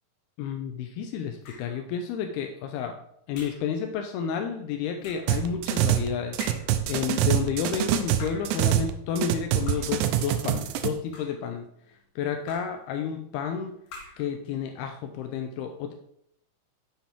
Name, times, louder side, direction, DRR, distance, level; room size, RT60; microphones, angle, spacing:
voice 1, 0.4-3.0 3.3-6.4 6.9-11.7 12.2-13.8 14.2-15.9, left 7 dB, 85° left, 5 dB, 2.2 m, -31 dB
sound 1, 1.4-1.8 3.3-3.7 5.0-5.4 6.4-6.9 8.0-8.6 9.7-10.1 10.9-11.5 12.5-12.9 13.9-14.3, left 3 dB, 60° left, 3.2 m, -45 dB
sound 2, 5.3-6.1 6.3-8.9 9.2-10.9, right 12 dB, 85° right, 2.9 m, -25 dB
7.4 x 6.8 x 4.5 m, 0.73 s
omnidirectional pair, 5.2 m